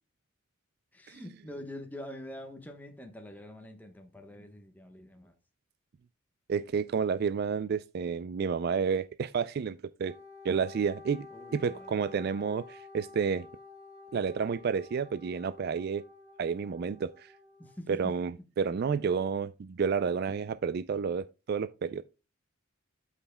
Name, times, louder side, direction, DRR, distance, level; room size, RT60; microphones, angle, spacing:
voice 1, 0.9-5.3 11.3-12.1 17.6-18.2, left 1 dB, 10° left, 1.1 m, -45 dB
voice 2, 6.5-10.1 10.4-11.3 11.5-13.5 14.1-16.0 16.4-17.3 17.9-22.0, right 6 dB, 50° right, 0.3 m, -30 dB
Wind instrument woodwind instrument, 10.0-17.7, left 3 dB, 35° right, 1.4 m, -51 dB
12.5 x 5.6 x 2.2 m
head